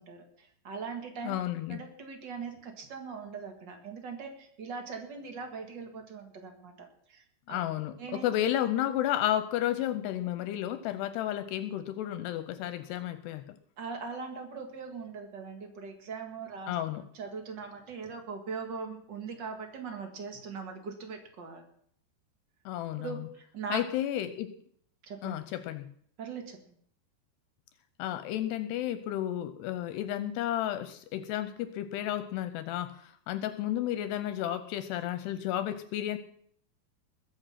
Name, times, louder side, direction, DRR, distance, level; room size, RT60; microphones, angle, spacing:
voice 1, 0.0-1.4 1.7-7.6 8.0-8.3 13.8-16.8 17.1-21.7 23.0-23.8 25.0-25.3 26.2-26.6, right 5 dB, 55° right, 5 dB, 1.2 m, -41 dB
voice 2, 1.2-1.8 7.5-13.6 16.7-17.0 22.7-23.1 23.7-24.5 25.2-25.9 28.0-36.2, left 12 dB, 80° left, 12 dB, 2.6 m, -32 dB
21.0 x 7.8 x 5.8 m, 0.64 s
omnidirectional pair, 5.1 m